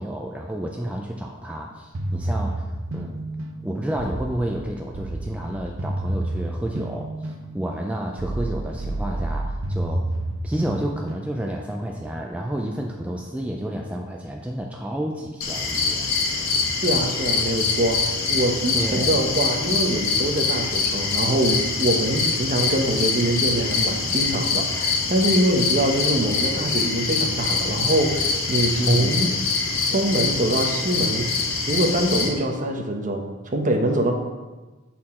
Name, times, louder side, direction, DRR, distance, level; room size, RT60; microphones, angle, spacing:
voice 1, 0.0-2.7 2.9-3.2 3.6-10.0 10.4-16.1 18.7-19.2 28.8-29.2, right 1 dB, 5° right, 0 dB, 0.4 m, -30 dB
sound 1, 1.9-11.7, right 1 dB, 75° right, 0.7 m, -30 dB
sound 2, 15.4-32.3, left 4 dB, 90° left, 1.3 m, -24 dB
voice 2, 16.8-29.3 29.9-31.3 31.7-34.1, right 1 dB, 40° right, 3 dB, 0.9 m, -24 dB
7.6 x 4.3 x 4.2 m, 1.2 s
head